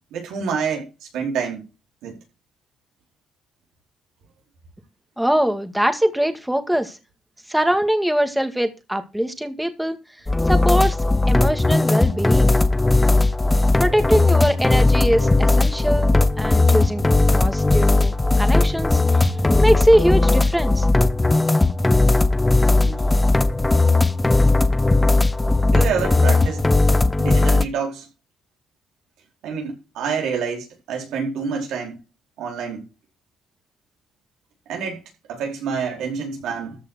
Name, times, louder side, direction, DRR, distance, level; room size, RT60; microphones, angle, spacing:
voice 1, 0.1-1.6 2.0-2.2 22.8-23.2 23.8-24.0 25.7-26.6 27.2-28.1 29.4-32.0 32.4-32.8 34.7-35.0 35.3-36.8, right 6 dB, 90° right, 4.6 m, -28 dB
voice 2, 5.2-7.0 7.5-10.0 10.5-11.0 11.3-12.5 13.8-17.1 17.3-19.0 19.6-20.9, equal, 5° right, 2.0 m, -22 dB
sound 1, 10.3-27.7, left 2 dB, 15° left, 0.8 m, -17 dB
14.0 x 5.7 x 6.3 m
cardioid pair, 90°, 0 cm